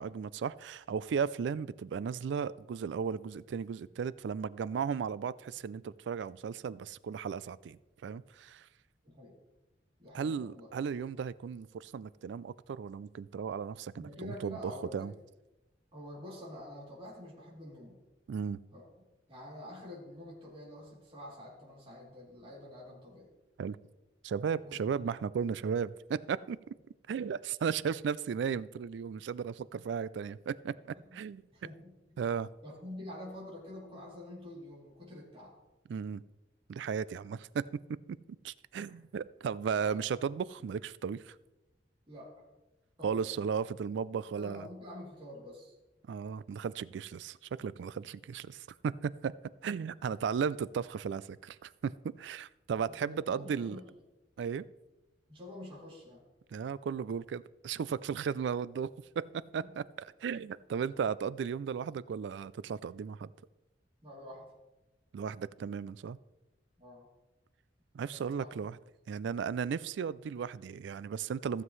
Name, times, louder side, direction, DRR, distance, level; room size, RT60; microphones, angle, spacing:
voice 1, 0.0-8.7 10.1-15.1 18.3-18.6 23.6-23.8 24.2-26.6 27.1-30.7 31.1-31.4 32.2-32.5 35.9-36.2 36.7-37.6 38.4-41.4 43.0-44.7 46.1-49.3 49.6-53.8 54.4-54.7 56.5-58.9 59.2-63.3 65.1-66.2 67.9-68.8 69.1-71.6, right 6 dB, 70° right, 19 dB, 0.3 m, -35 dB
voice 2, 9.0-9.3 10.0-10.7 13.9-15.1 15.9-18.0 18.7-18.9 19.3-23.3 24.6-24.9 27.2-27.3 31.0-31.2 31.5-31.9 32.6-35.5 38.7-38.9 39.8-40.2 42.1-42.4 43.0-43.5 44.3-45.7 52.8-53.8 55.3-56.2 59.6-59.7 64.0-64.5 66.8-67.1 68.0-68.5, left 1 dB, 30° right, -6 dB, 3.0 m, -47 dB
15.0 x 7.4 x 3.2 m, 1.0 s
head